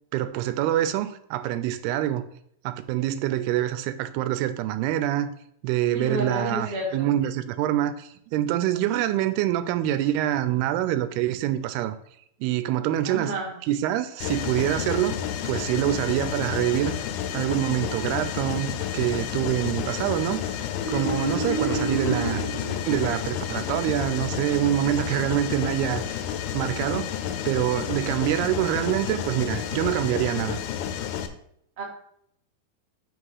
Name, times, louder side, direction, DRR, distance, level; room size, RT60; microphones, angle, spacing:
voice 1, 0.1-2.2 2.6-5.3 5.6-12.0 12.4-13.3 13.7-15.2 15.5-17.0 17.3-20.4 20.9-22.4 22.9-26.2 26.5-27.1 27.5-30.6, right 13 dB, 90° right, 2.6 m, -25 dB
voice 2, 5.9-7.1 13.0-13.5 31.8-31.9, right 1 dB, 45° right, 0.8 m, -30 dB
Mechanisms, 14.2-31.3, left 9 dB, 90° left, 2.6 m, -31 dB
Marimba xylophone, 20.7-23.5, right 1 dB, 50° left, 1.5 m, -30 dB
5.9 x 4.8 x 5.4 m
omnidirectional pair, 4.5 m